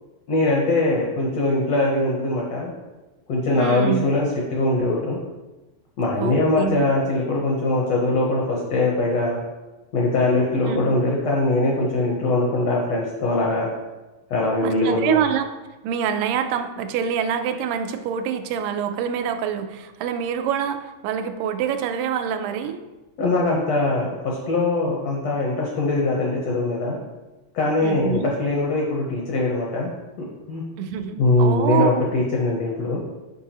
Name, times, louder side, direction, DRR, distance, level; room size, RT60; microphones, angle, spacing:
voice 1, 0.3-2.7 3.3-5.2 6.0-9.4 9.9-13.7 14.3-15.2 23.2-27.0 27.5-29.9 30.2-30.6 31.2-33.0, left 2 dB, 70° left, -2 dB, 1.6 m, -22 dB
voice 2, 3.6-4.1 6.2-6.9 10.7-10.9 14.6-15.5 15.8-22.8 27.8-28.3 30.8-32.1, right 8 dB, 85° right, 8 dB, 2.2 m, -26 dB
7.0 x 5.4 x 2.9 m, 1.1 s
omnidirectional pair, 3.8 m